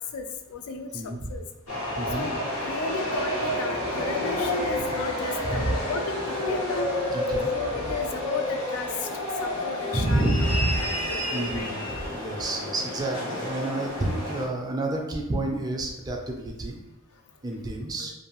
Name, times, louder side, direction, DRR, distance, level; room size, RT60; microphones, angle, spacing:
voice 1, 0.0-1.4 2.1-2.3 2.6-6.8 7.5-10.2 10.8-11.7 18.0-18.1, left 4 dB, 65° left, 6 dB, 0.3 m, -34 dB
voice 2, 0.9-1.3 2.0-2.3 5.4-5.8 7.1-7.5 9.9-10.9 11.3-16.8 17.4-18.1, right 2 dB, 15° right, 1 dB, 0.3 m, -29 dB
sound 1, 1.7-14.5, left 1 dB, 85° left, 1.0 m, -30 dB
2.6 x 2.2 x 2.9 m, 1.1 s
head